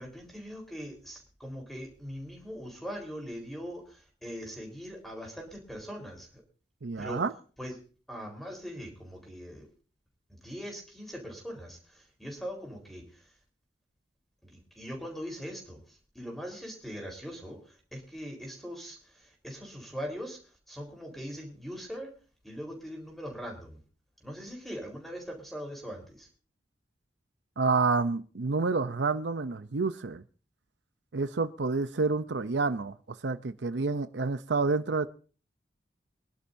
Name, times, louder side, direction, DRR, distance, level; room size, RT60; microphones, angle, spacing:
voice 1, 0.0-6.4 7.0-7.2 7.6-9.7 10.3-13.3 14.4-22.1 22.4-23.8 24.2-26.3, equal, ahead, 4.2 m, -41 dB
voice 2, 6.8-7.3 27.6-30.2 31.1-32.9 33.2-35.1, right 4 dB, 80° right, 0.7 m, -28 dB
24.0 x 11.5 x 2.7 m
head